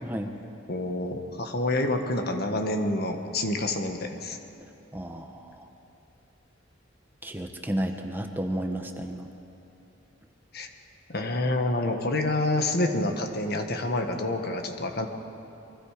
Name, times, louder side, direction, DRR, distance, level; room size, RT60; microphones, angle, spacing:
voice 1, 0.0-0.3 4.9-5.7 7.2-9.3, right 1 dB, 10° right, 4 dB, 1.2 m, -32 dB
voice 2, 0.7-4.4 10.5-10.7 11.1-15.1, left 2 dB, 55° left, 5 dB, 1.7 m, -28 dB
28.5 x 23.0 x 5.1 m, 2.8 s
head